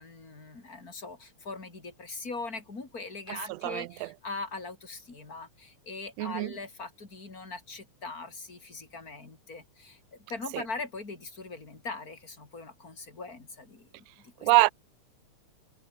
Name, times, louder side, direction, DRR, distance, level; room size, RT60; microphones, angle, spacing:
voice 1, 0.0-14.5, left 3 dB, 30° left, 4.5 m, -41 dB
voice 2, 3.3-4.1 6.2-6.5 10.5-10.6 14.4-14.7, right 21 dB, 80° right, 1.5 m, -25 dB
omnidirectional pair, 3.4 m